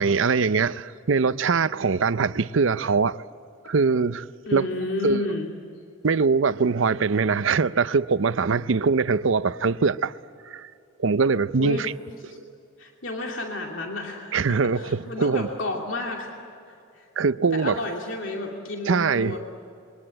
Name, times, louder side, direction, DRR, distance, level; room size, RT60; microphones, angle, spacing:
voice 1, 0.0-3.2 3.7-4.3 4.5-4.7 5.0-5.2 6.0-10.1 10.5-10.7 11.0-11.9 14.3-15.5 17.2-17.8 18.9-19.4, right 4 dB, 70° right, 0.6 m, -22 dB
voice 2, 4.5-5.5 11.6-11.8 12.3-12.4 12.8-16.3 16.9-17.1 17.5-19.4, left 2 dB, 75° left, 2.7 m, -31 dB
27.0 x 23.0 x 8.9 m
head